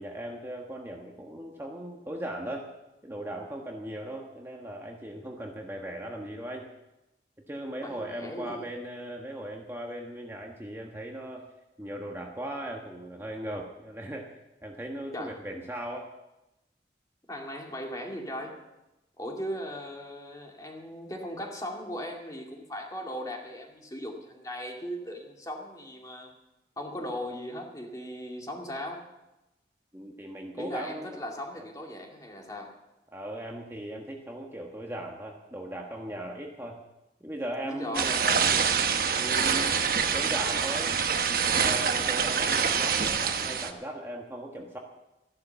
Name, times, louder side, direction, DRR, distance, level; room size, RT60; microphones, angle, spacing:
voice 1, 0.0-2.7 3.0-6.7 7.5-11.4 11.8-14.3 14.6-16.1 29.9-31.3 31.5-31.6 33.1-36.8 37.2-38.7 39.1-39.8 40.1-41.0 41.4-44.8, right 1 dB, 15° right, 0 dB, 1.3 m, -38 dB
voice 2, 7.8-8.7 15.1-15.4 17.3-18.6 19.2-26.3 26.8-29.0 30.6-32.7 37.6-38.1, equal, 20° left, 1 dB, 2.3 m, -38 dB
sound 1, 37.9-43.7, right 6 dB, 55° right, 1.1 m, -26 dB
14.5 x 11.5 x 7.0 m, 0.96 s
head